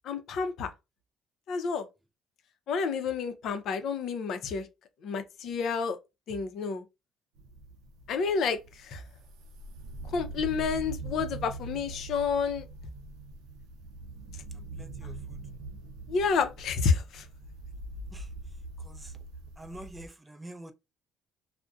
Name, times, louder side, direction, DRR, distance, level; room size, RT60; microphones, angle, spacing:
voice 1, 0.0-0.7 1.5-1.9 2.7-4.7 5.0-6.0 6.3-6.8 8.1-9.0 10.1-12.6 16.1-17.2, left 5 dB, 65° left, 0.5 m, -29 dB
sound 1, 7.4-20.1, right 2 dB, 85° right, 0.4 m, -43 dB
voice 2, 14.8-15.4 18.1-18.3 18.8-19.1 19.6-20.7, right 1 dB, 15° right, 0.4 m, -46 dB
2.5 x 2.1 x 2.3 m
supercardioid pair, 90°, 0 cm